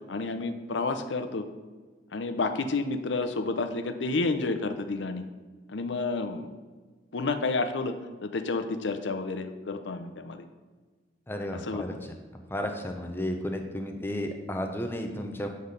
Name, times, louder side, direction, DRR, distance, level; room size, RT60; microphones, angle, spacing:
voice 1, 0.1-1.5 2.1-5.3 5.7-6.5 7.1-8.0 8.2-10.4 11.6-12.0, left 3 dB, 80° left, 9 dB, 0.6 m, -30 dB
voice 2, 11.3-12.1 12.5-15.5, left 1 dB, 10° left, 4 dB, 0.6 m, -33 dB
7.1 x 4.0 x 6.5 m, 1.4 s
head